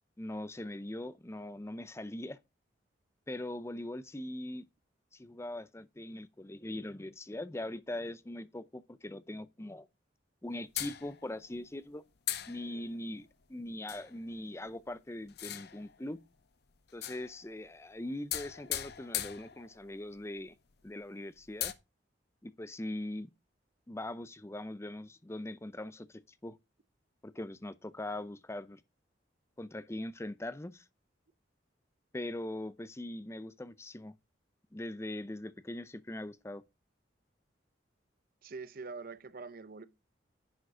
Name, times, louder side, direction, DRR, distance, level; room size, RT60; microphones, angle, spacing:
voice 1, 0.2-2.4 3.3-4.7 5.1-9.9 10.4-12.0 12.5-16.2 16.9-20.5 20.8-21.7 22.4-23.3 23.9-26.6 27.2-28.8 29.6-30.8 32.1-34.1 34.7-36.6, left 1 dB, 15° left, 0.5 m, -41 dB
sound 1, 10.8-11.5 12.3-13.0 13.9-14.2 15.3-16.0 16.9-17.6 18.3-20.0 20.5-20.6 20.8-20.9 21.4-21.7, left 12 dB, 60° left, 0.7 m, -39 dB
voice 2, 38.4-39.9, right 4 dB, 50° right, 0.7 m, -44 dB
10.5 x 4.9 x 4.9 m
head